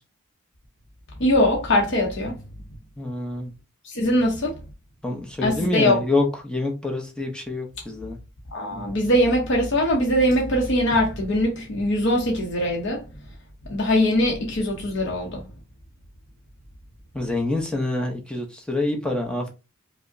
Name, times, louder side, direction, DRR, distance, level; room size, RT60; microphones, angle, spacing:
voice 1, 1.2-2.3 3.9-4.6 5.4-6.0 8.5-13.0 13.7-15.4, left 1 dB, 60° left, 0.7 m, -21 dB
voice 2, 3.0-3.5 5.0-8.2 17.1-19.5, left 2 dB, 5° left, 0.7 m, -26 dB
4.8 x 2.1 x 2.5 m
head